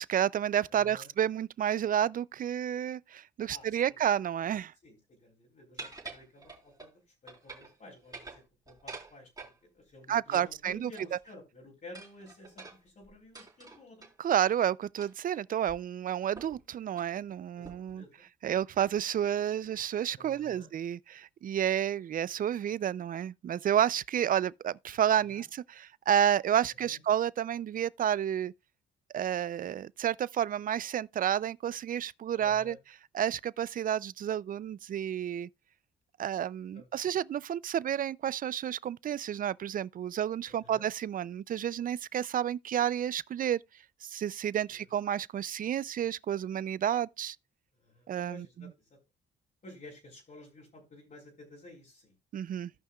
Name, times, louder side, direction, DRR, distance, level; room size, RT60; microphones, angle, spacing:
voice 1, 0.0-4.7 10.1-10.9 14.2-18.0 18.4-28.5 29.1-32.8 33.1-35.5 36.2-43.6 44.0-47.4 48.1-48.7 52.3-52.7, right 10 dB, 45° right, 0.4 m, -30 dB
voice 2, 0.7-1.1 3.5-4.0 4.8-14.1 17.6-18.1 20.2-20.7 25.3-25.4 26.8-27.0 32.3-32.8 36.7-37.1 40.5-40.8 44.7-44.8 47.8-49.0 49.6-52.1, left 2 dB, 40° left, 3.7 m, -52 dB
sound 1, 5.8-6.9 7.3-7.8 8.0-9.6 10.3-11.3 11.9-14.1 15.0-15.3 15.7-15.8 16.4-16.6 16.9-17.1 17.6-18.0, right 3 dB, 20° right, 3.6 m, -47 dB
16.5 x 5.6 x 2.3 m
cardioid pair, 90°, 20 cm